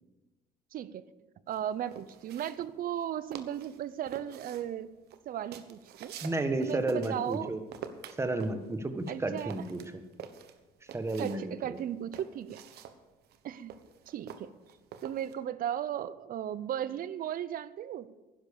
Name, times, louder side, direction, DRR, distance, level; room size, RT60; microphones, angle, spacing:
voice 1, 0.7-1.1 1.5-4.9 5.3-6.2 6.6-7.5 9.1-9.5 11.2-12.6 13.4-13.7 14.1-14.5 15.0-18.1, right 10 dB, 55° right, 17 dB, 0.7 m, -36 dB
sound 1, 1.5-3.1 3.3-3.8 4.1-7.4 7.7-11.4 11.7-15.3, right 8 dB, 75° right, 1.2 m, -47 dB
voice 2, 6.2-7.6 8.2-9.8 10.8-11.8, right 2 dB, 15° right, 8 dB, 1.3 m, -32 dB
11.5 x 10.5 x 6.8 m, 1.1 s
cardioid pair, 110°, 17 cm